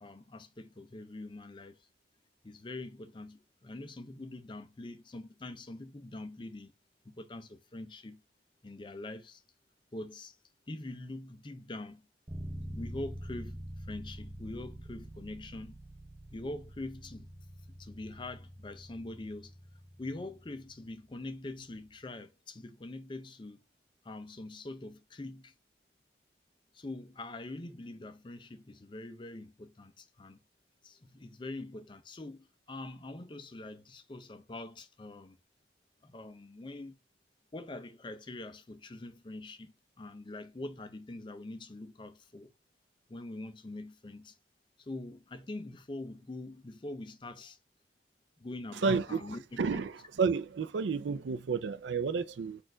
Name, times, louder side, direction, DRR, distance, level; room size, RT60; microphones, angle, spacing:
voice 1, 0.0-1.9 2.4-6.7 7.0-8.2 8.6-9.4 9.9-10.4 10.7-12.0 12.7-15.8 16.3-17.3 17.8-19.5 20.0-23.6 24.0-25.5 26.7-30.4 30.8-35.4 36.0-37.0 37.5-42.5 43.1-44.4 44.8-47.6 48.4-49.8, left 2 dB, 25° left, 0.4 m, -44 dB
sound 1, 12.3-22.0, equal, 15° right, 0.7 m, -46 dB
voice 2, 48.8-49.2 49.6-52.6, right 5 dB, 80° right, 0.4 m, -31 dB
4.3 x 2.5 x 4.3 m
head